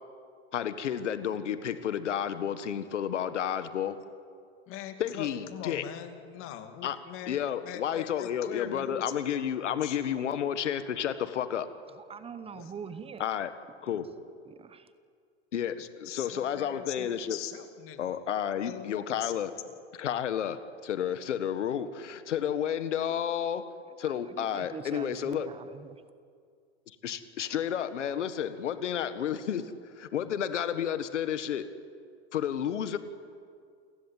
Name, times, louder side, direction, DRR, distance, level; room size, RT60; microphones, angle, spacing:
voice 1, 0.5-4.0 5.0-5.8 6.8-7.0 7.3-11.7 13.2-13.5 13.8-14.1 15.5-17.4 18.0-19.5 20.0-20.6 20.8-23.6 24.0-25.5 27.0-29.7 30.0-31.7 32.3-33.0, left 9 dB, 90° left, 12 dB, 1.7 m, -31 dB
voice 2, 4.7-9.2 9.5-10.1 12.4-12.7 16.0-18.1 18.6-19.8, left 11 dB, 40° left, 7 dB, 2.6 m, -42 dB
voice 3, 12.0-13.2 14.5-14.9 24.0-26.0, right 6 dB, 15° right, 12 dB, 0.9 m, -43 dB
29.0 x 16.5 x 9.1 m, 2.2 s
hypercardioid pair, 130°, 35 cm